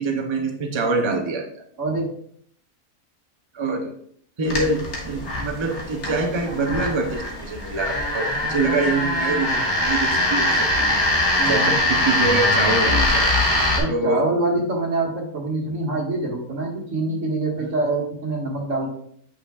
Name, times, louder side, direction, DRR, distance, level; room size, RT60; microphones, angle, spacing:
voice 1, 0.0-1.5 3.5-4.0 4.4-11.0 11.5-13.3 13.9-14.3 17.6-17.7, right 3 dB, 30° right, 4 dB, 0.5 m, -25 dB
voice 2, 1.8-2.1 11.4-11.8 13.8-18.9, right 2 dB, 60° right, -1 dB, 1.9 m, -25 dB
sound 1, 4.5-13.8, left 1 dB, 55° left, 1.8 m, -22 dB
8.6 x 5.8 x 2.3 m, 0.64 s
omnidirectional pair, 1.5 m